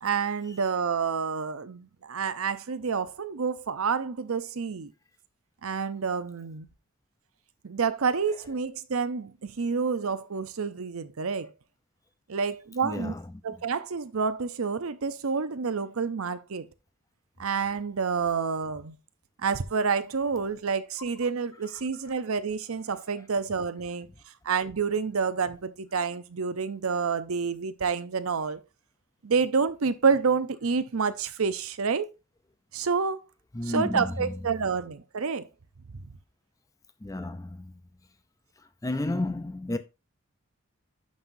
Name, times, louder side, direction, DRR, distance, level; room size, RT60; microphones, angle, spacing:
voice 1, 0.0-4.9 5.6-6.7 7.6-11.5 12.3-13.1 13.4-16.7 17.4-19.0 19.4-24.1 24.4-28.6 29.2-32.1 32.7-33.2 33.7-35.5, right 5 dB, 85° right, 0.7 m, -28 dB
voice 2, 12.8-13.2 33.5-34.4 37.0-37.8 38.8-39.8, left 1 dB, 15° left, 0.5 m, -32 dB
11.5 x 5.5 x 2.7 m
head